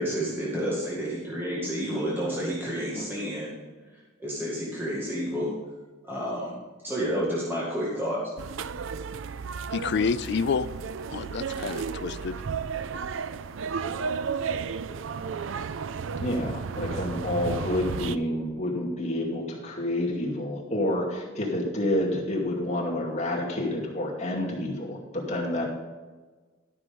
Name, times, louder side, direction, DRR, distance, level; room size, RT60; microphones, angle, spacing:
voice 1, 0.0-3.5 4.2-5.5 6.1-6.5 6.8-8.2, equal, 10° right, -6 dB, 2.0 m, -30 dB
sound 1, 8.4-18.2, right 6 dB, 70° right, 0.4 m, -33 dB
voice 2, 9.7-10.7 11.1-12.4, left 5 dB, 60° left, 15 dB, 0.4 m, -28 dB
voice 3, 16.2-25.7, left 1 dB, 35° left, -3 dB, 2.4 m, -29 dB
12.5 x 6.1 x 5.4 m, 1.3 s
head